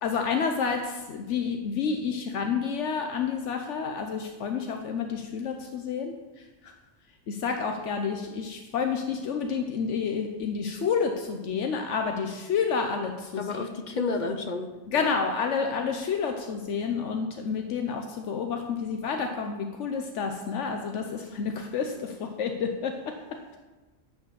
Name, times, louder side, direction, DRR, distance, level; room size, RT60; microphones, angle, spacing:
voice 1, 0.0-6.1 6.6-6.7 7.3-13.7 14.9-23.1, left 6 dB, 80° left, 4 dB, 1.1 m, -29 dB
voice 2, 13.4-15.1, left 3 dB, 45° left, 7 dB, 0.8 m, -31 dB
11.0 x 4.9 x 7.0 m, 1.2 s
omnidirectional pair, 1.2 m